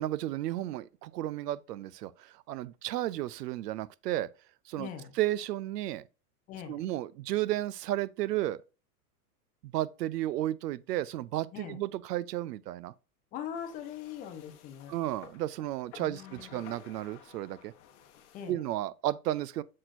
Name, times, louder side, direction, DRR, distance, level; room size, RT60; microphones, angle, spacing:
voice 1, 0.0-4.3 4.7-4.9 5.2-6.1 6.7-8.6 9.7-12.9 14.9-17.7 18.5-19.6, right 14 dB, 85° right, 0.6 m, -33 dB
voice 2, 4.8-5.1 6.5-6.8 11.5-11.8 13.3-15.0 16.0-16.6 18.3-18.6, left 9 dB, 20° left, 0.6 m, -41 dB
sound 1, 13.5-18.5, left 8 dB, 45° left, 1.0 m, -54 dB
6.4 x 6.0 x 2.5 m
supercardioid pair, 155°, 46 cm